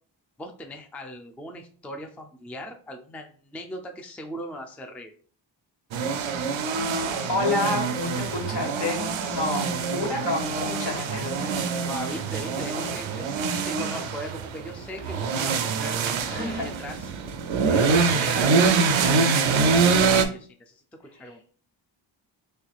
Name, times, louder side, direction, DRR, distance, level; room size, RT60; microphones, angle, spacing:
voice 1, 0.4-5.1 11.8-17.1 17.6-20.8 21.2-21.4, equal, 5° left, 4 dB, 0.4 m, -39 dB
sound 1, 5.9-20.3, right 5 dB, 85° right, 0.5 m, -25 dB
voice 2, 7.3-11.6 16.2-16.6 21.2-21.3, left 2 dB, 65° left, -1 dB, 1.5 m, -29 dB
3.3 x 3.2 x 2.3 m, 0.43 s
cardioid pair, 65°, 46 cm